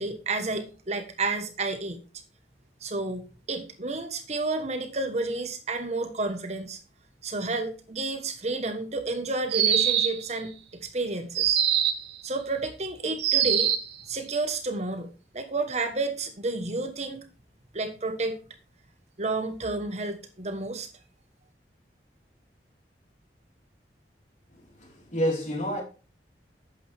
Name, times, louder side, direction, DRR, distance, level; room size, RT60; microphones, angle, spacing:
voice 1, 0.0-2.0 2.8-6.8 7.2-10.5 10.8-11.6 12.2-13.7 14.1-17.2 17.7-18.4 19.2-20.9, right 3 dB, 40° right, 1.4 m, -31 dB
sound 1, 9.5-10.3 11.4-12.1 13.2-13.9, right 9 dB, 75° right, 1.4 m, -23 dB
voice 2, 24.8-25.8, equal, 45° left, 4.5 m, -28 dB
12.0 x 8.6 x 3.6 m
head